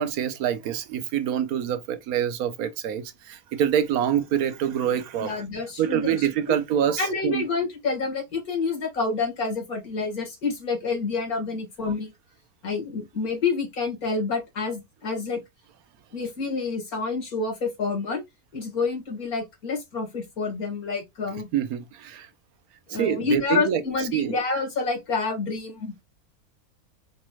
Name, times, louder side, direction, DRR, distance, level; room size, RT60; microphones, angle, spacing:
voice 1, 0.0-5.4 5.8-7.4 21.5-22.3 23.0-23.8 24.1-24.4, right 9 dB, 85° right, 1.1 m, -26 dB
voice 2, 5.2-6.6 7.0-12.1 12.6-15.4 16.1-18.2 18.5-21.5 22.9-26.0, left 4 dB, 80° left, 2.3 m, -28 dB
5.1 x 3.1 x 2.3 m
omnidirectional pair, 1.5 m